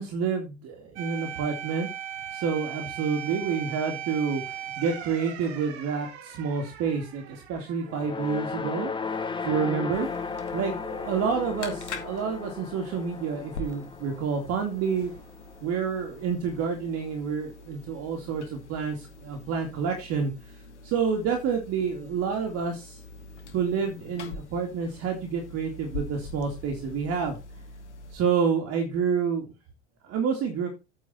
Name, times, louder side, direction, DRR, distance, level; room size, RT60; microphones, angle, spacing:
voice 1, 0.0-1.9 2.3-8.9 9.4-15.1 15.6-23.0 23.5-27.4 28.1-29.5 30.0-30.7, right 6 dB, 45° right, 3 dB, 2.7 m, -29 dB
sound 1, 1.0-9.6 9.9-10.1 14.9-15.5, right 9 dB, 70° right, 1.9 m, -39 dB
sound 2, 7.9-16.2, left 5 dB, 15° left, 1.4 m, -35 dB
sound 3, 9.9-28.1, left 3 dB, 80° left, 2.4 m, -44 dB
8.9 x 6.3 x 4.3 m, 0.27 s
hypercardioid pair, 85°, 34 cm